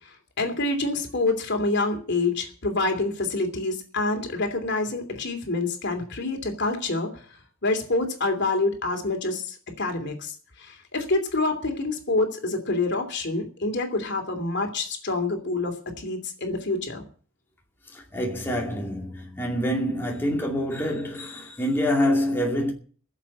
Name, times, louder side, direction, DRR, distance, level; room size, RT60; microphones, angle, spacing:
voice 1, 0.4-7.2 7.6-17.0, left 2 dB, 55° left, 3.0 m, -27 dB
voice 2, 17.9-22.7, equal, 10° left, 2.5 m, -26 dB
16.0 x 7.4 x 8.5 m
head